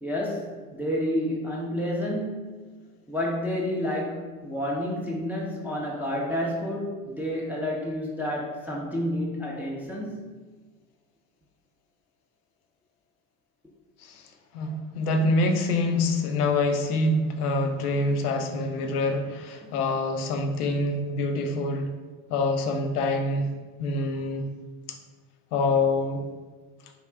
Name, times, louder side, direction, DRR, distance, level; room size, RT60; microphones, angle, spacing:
voice 1, 0.0-2.5 3.1-10.3, left 1 dB, 5° right, -3 dB, 0.4 m, -30 dB
voice 2, 14.5-21.9 22.3-23.5 23.8-24.5 25.5-26.3, left 2 dB, 80° left, 5 dB, 0.6 m, -25 dB
3.6 x 2.3 x 3.2 m, 1.4 s
hypercardioid pair, 75°, 44 cm